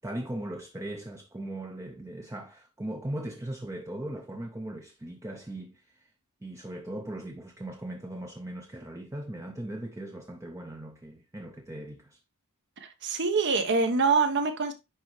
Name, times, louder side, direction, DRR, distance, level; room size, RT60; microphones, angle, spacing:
voice 1, 0.0-6.1 6.4-12.2, right 1 dB, 15° right, 0.6 m, -39 dB
voice 2, 12.8-14.7, right 4 dB, 55° right, 1.1 m, -25 dB
10.0 x 3.6 x 3.1 m
head